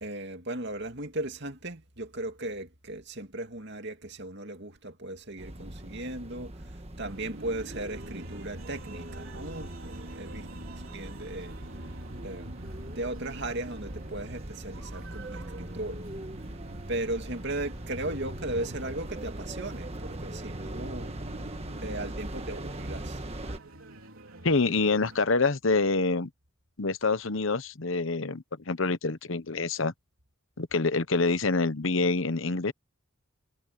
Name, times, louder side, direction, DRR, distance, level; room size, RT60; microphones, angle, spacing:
voice 1, 0.0-10.5 10.9-11.5 12.2-16.0 16.9-21.1 21.8-23.2, right 1 dB, 55° right, 2.5 m, -37 dB
sound 1, 5.4-23.6, right 1 dB, 30° right, 1.5 m, -40 dB
sound 2, 7.0-25.2, right 1 dB, 75° right, 4.0 m, -47 dB
voice 2, 24.4-26.3 26.8-29.9 30.6-32.7, left 3 dB, 65° left, 1.1 m, -26 dB
head